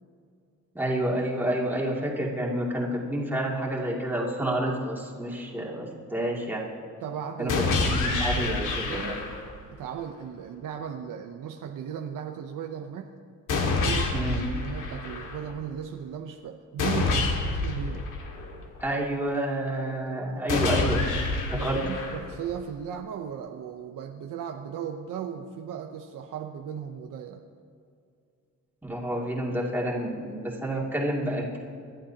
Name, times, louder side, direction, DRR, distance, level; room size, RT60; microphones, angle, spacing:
voice 1, 0.7-6.7 7.4-7.7 8.0-9.2 14.1-14.4 18.8-21.0 21.5-21.8 28.8-31.6, right 1 dB, 5° right, -3 dB, 2.5 m, -29 dB
voice 2, 7.0-9.1 9.7-13.1 13.6-14.3 14.5-18.1 21.5-27.4, right 8 dB, 80° right, 4 dB, 0.8 m, -37 dB
sound 1, 7.5-9.5 13.5-15.5 16.8-18.8 20.5-22.5, left 3 dB, 75° left, 2.1 m, -28 dB
26.5 x 11.5 x 2.9 m, 2.4 s
cardioid pair, 135°, 31 cm